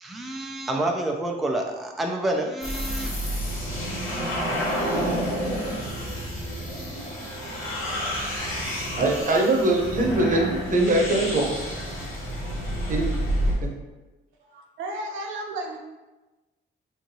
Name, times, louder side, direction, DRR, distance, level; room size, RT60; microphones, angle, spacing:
voice 1, 0.0-3.1, right 1 dB, ahead, 1 dB, 0.3 m, -28 dB
sound 1, 2.6-13.5, equal, 90° left, 1.2 m, -29 dB
voice 2, 9.0-11.5 12.9-13.1 13.6-13.7, right 2 dB, 40° right, 0 dB, 0.8 m, -22 dB
voice 3, 14.4-15.8, right 1 dB, 85° right, 1 dB, 0.5 m, -34 dB
3.7 x 2.6 x 2.7 m, 1.1 s
cardioid pair, 90°, 20 cm